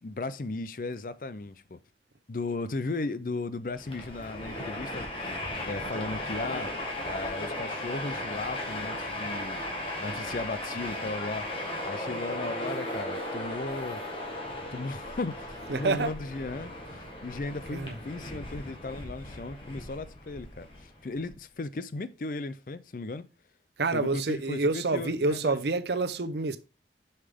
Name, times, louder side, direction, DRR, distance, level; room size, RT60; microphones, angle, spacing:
voice 1, 0.0-1.8 2.3-5.3 5.6-6.7 7.1-9.6 10.0-11.5 11.8-14.0 14.7-23.3 23.9-25.6, left 3 dB, 50° left, 0.5 m, -36 dB
Train, 3.7-21.3, left 1 dB, 30° left, 1.7 m, -36 dB
voice 2, 15.7-16.1 17.7-18.0 23.8-26.6, right 3 dB, 75° right, 0.7 m, -28 dB
6.7 x 5.6 x 3.5 m
head